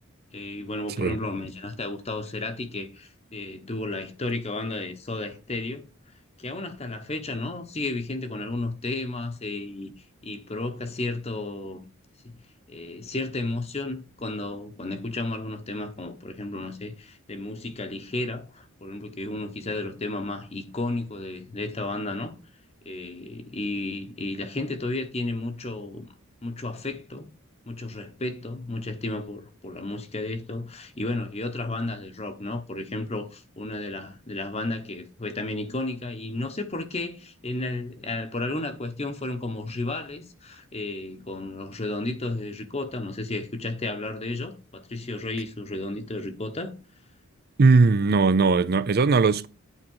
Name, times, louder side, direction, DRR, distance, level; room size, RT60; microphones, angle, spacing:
voice 1, 0.3-5.8 6.4-11.9 12.2-12.3 12.7-22.3 22.8-26.1 26.4-27.3 27.7-46.7, left 2 dB, 30° left, 0.9 m, -33 dB
voice 2, 47.6-49.5, right 4 dB, 45° right, 0.5 m, -19 dB
8.9 x 4.2 x 4.5 m
head